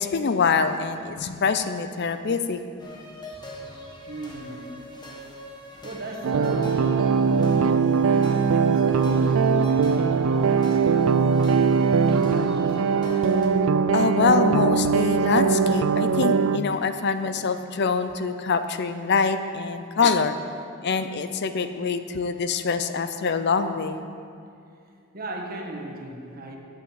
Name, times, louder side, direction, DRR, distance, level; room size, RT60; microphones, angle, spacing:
voice 1, 0.0-2.6 13.9-20.4 20.8-24.0, left 5 dB, 55° left, 10 dB, 0.5 m, -24 dB
sound 1, 2.8-13.5, equal, 20° left, 1.4 m, -42 dB
voice 2, 4.1-4.9 5.8-12.8 25.1-26.6, right 1 dB, 45° right, 1 dB, 1.4 m, -38 dB
sound 2, 6.2-16.6, right 5 dB, 75° right, 0.4 m, -21 dB
8.8 x 8.6 x 7.3 m, 2.5 s
head